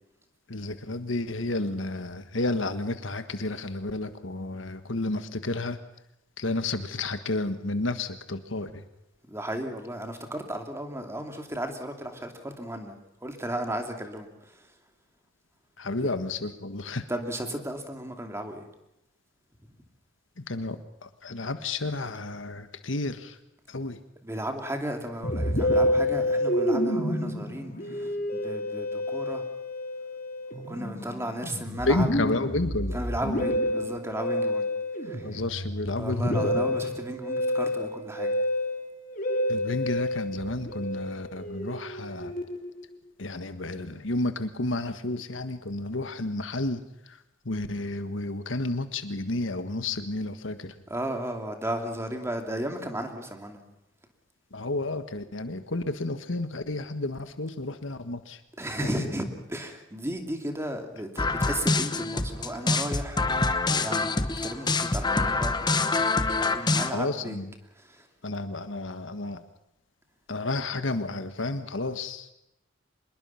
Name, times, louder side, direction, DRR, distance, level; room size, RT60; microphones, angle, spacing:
voice 1, 0.5-5.8 6.4-8.8 15.8-17.0 20.4-23.4 23.7-24.0 31.9-33.0 35.2-36.5 39.5-42.3 43.2-47.2 47.4-50.8 54.5-58.4 58.8-59.1 66.9-67.5 68.2-69.4 70.3-72.3, left 2 dB, 80° left, 10 dB, 1.6 m, -31 dB
voice 2, 9.3-12.9 13.2-14.7 16.0-16.1 17.1-18.7 24.2-29.5 30.5-32.1 32.9-34.7 35.1-35.4 36.0-38.3 50.9-53.6 58.6-63.2 63.7-64.1 64.4-67.5 67.8-68.1, right 1 dB, 15° right, 4 dB, 2.7 m, -34 dB
Musical instrument, 25.2-42.8, left 1 dB, 50° left, 3.4 m, -29 dB
sound 1, 61.2-66.9, left 3 dB, 25° left, 1.1 m, -26 dB
25.0 x 21.5 x 5.8 m, 0.87 s
head